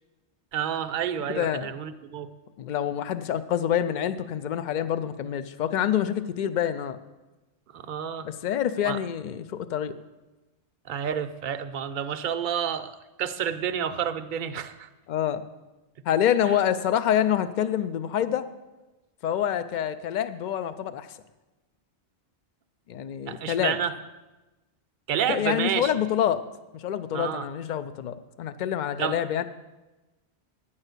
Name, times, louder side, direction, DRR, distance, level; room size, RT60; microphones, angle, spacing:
voice 1, 0.5-2.3 7.7-8.3 8.8-9.0 10.9-14.9 16.5-16.6 23.3-23.9 25.1-25.9 27.1-27.5 29.0-29.2, right 8 dB, 55° right, 9 dB, 0.7 m, -30 dB
voice 2, 1.3-1.7 2.6-7.0 8.2-9.9 15.1-15.4 16.1-18.5 19.2-21.1 22.9-23.8 25.3-26.4 26.7-29.4, left 10 dB, 55° left, 12 dB, 0.5 m, -26 dB
9.8 x 5.6 x 8.1 m, 1.1 s
omnidirectional pair, 1.2 m